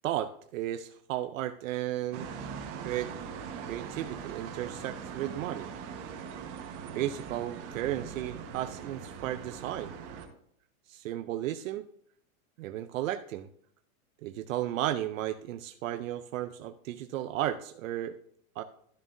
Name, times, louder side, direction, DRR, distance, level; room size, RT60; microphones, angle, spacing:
voice 1, 0.0-2.3 2.8-3.1 3.7-5.7 6.9-9.9 10.9-11.8 12.6-13.5 14.2-18.2 18.6-18.7, right 13 dB, 70° right, 10 dB, 0.7 m, -34 dB
sound 1, 2.1-10.3, right 6 dB, 35° right, 1.3 m, -41 dB
13.0 x 7.1 x 2.7 m, 0.65 s
supercardioid pair, 150°, 42 cm